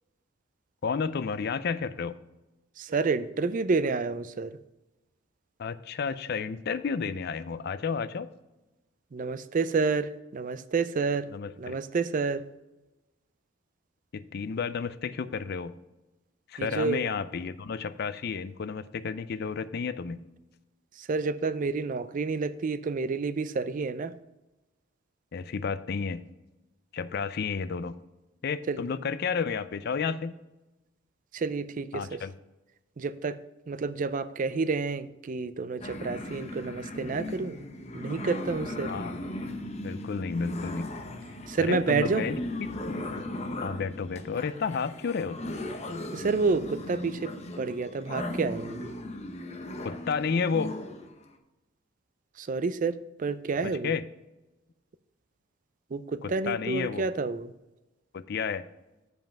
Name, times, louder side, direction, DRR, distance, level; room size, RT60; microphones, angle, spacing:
voice 1, 0.8-2.2 5.6-8.3 11.3-11.8 14.1-15.8 16.5-20.2 25.3-26.2 26.9-28.0 28.4-30.4 31.9-32.3 38.9-39.2 39.8-40.9 41.6-42.4 43.6-45.5 49.8-50.7 53.6-54.0 56.2-57.0 58.1-58.7, left 5 dB, 50° left, 14 dB, 0.4 m, -31 dB
voice 2, 2.8-4.6 9.1-11.3 11.6-12.4 16.6-17.0 21.0-24.1 28.7-28.8 31.3-32.2 33.0-33.4 33.7-37.6 37.9-38.9 41.5-42.2 46.1-47.3 47.6-48.9 52.4-53.9 55.9-57.5, right 4 dB, 40° right, 14 dB, 0.4 m, -29 dB
sound 1, 35.8-51.1, left 1 dB, 35° left, 0.8 m, -37 dB
7.7 x 5.3 x 5.8 m, 1.0 s
head